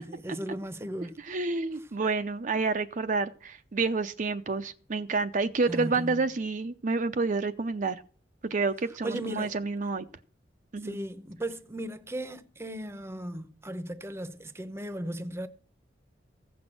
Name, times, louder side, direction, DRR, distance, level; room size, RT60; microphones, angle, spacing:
voice 1, 0.0-1.1 5.7-6.1 9.0-9.5 10.8-15.5, right 1 dB, 15° right, 0.8 m, -36 dB
voice 2, 1.2-8.0 8.4-10.1 10.7-11.0, right 3 dB, 45° right, 0.6 m, -29 dB
15.5 x 6.2 x 7.6 m
head